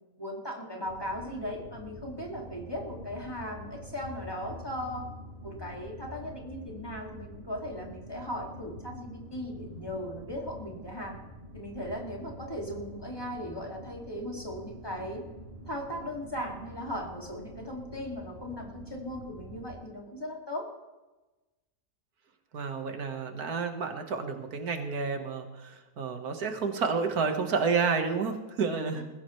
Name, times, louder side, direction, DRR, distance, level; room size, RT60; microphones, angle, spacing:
voice 1, 0.2-5.1 5.4-11.1 11.5-15.2 15.6-20.7 28.9-29.0, equal, 15° left, -1 dB, 2.4 m, -38 dB
sound 1, 0.9-19.7, equal, 30° right, 6.1 m, -46 dB
voice 2, 22.5-29.0, right 5 dB, 90° right, 5 dB, 2.0 m, -30 dB
20.5 x 15.5 x 3.2 m, 1.1 s
omnidirectional pair, 1.5 m